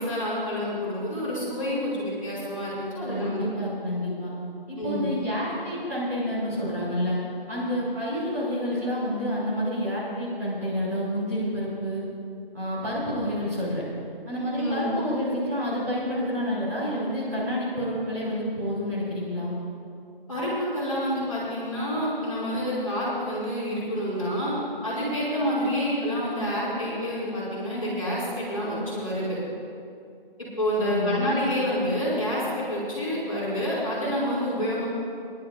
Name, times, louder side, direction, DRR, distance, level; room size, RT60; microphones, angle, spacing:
voice 1, 0.0-3.4 4.8-5.1 14.6-14.9 20.3-24.5 24.8-29.4 30.4-34.9, equal, 35° left, -8 dB, 3.1 m, -28 dB
voice 2, 3.1-4.3 4.7-7.2 7.5-12.0 12.5-13.8 14.2-19.5 30.8-31.2, equal, 15° right, -13 dB, 3.2 m, -29 dB
21.5 x 11.0 x 2.7 m, 2.5 s
figure-of-eight pair, 170°, 29 cm